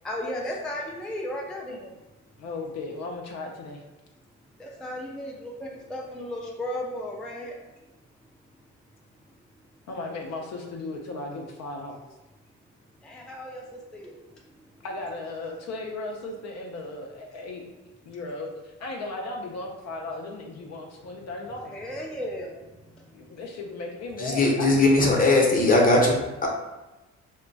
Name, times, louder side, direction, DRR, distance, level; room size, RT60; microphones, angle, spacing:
voice 1, 0.0-2.3 4.5-7.6 8.2-8.3 9.2-9.3 13.0-14.8 18.1-18.2 21.6-23.4, left 1 dB, 5° left, -2 dB, 0.3 m, -36 dB
voice 2, 2.4-3.8 9.9-12.0 14.8-17.7 18.0-21.7 23.1-24.9, left 2 dB, 60° left, 1 dB, 0.5 m, -36 dB
voice 3, 24.2-26.5, left 2 dB, 30° left, -1 dB, 0.8 m, -20 dB
2.2 x 2.2 x 3.8 m, 1.1 s
cardioid pair, 90°, 30 cm